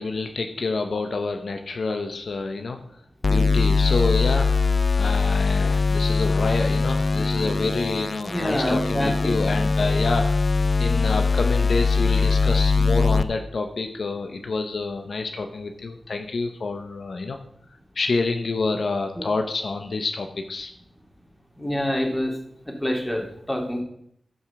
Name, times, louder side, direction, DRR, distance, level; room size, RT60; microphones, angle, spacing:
voice 1, 0.0-2.8 3.3-4.5 5.0-10.2 10.8-17.4 17.9-20.7, left 3 dB, 70° left, 5 dB, 0.9 m, -28 dB
sound 1, 3.2-13.2, left 4 dB, 50° left, 0.6 m, -21 dB
voice 2, 8.3-9.1 21.6-22.3 22.7-23.8, equal, 15° left, 2 dB, 2.9 m, -26 dB
12.5 x 5.6 x 5.9 m, 0.71 s
cardioid pair, 50°, 0 cm